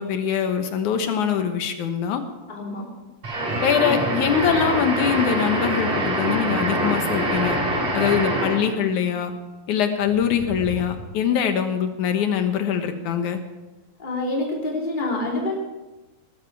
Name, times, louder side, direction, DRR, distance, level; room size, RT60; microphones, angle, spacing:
voice 1, 0.0-2.2 3.6-7.6 7.9-9.3 9.7-13.4, left 8 dB, 85° left, 7 dB, 2.8 m, -23 dB
voice 2, 2.5-2.9 14.0-15.5, left 2 dB, 15° left, -2 dB, 3.1 m, -26 dB
sound 1, 3.2-8.7, right 1 dB, 65° right, 5.5 m, -24 dB
sound 2, 4.1-5.0 5.3-5.5 7.0-8.5 10.0-11.3, left 1 dB, 65° left, 3.2 m, -38 dB
sound 3, 6.0-9.0, equal, 50° right, 3.8 m, -40 dB
19.0 x 13.0 x 4.7 m, 1.1 s
omnidirectional pair, 3.3 m